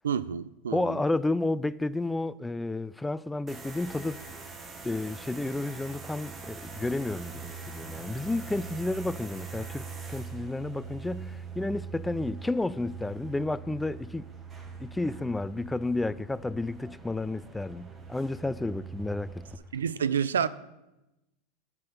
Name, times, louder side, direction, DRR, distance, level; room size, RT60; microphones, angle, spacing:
voice 1, 0.0-1.0 19.7-20.5, right 7 dB, 90° right, 0.4 m, -28 dB
voice 2, 0.7-4.2 4.8-14.2 14.8-19.5, left 2 dB, 10° left, 0.3 m, -31 dB
sound 1, 3.5-19.6, right 5 dB, 25° right, 1.4 m, -43 dB
9.7 x 6.0 x 6.8 m
hypercardioid pair, 105°, 0 cm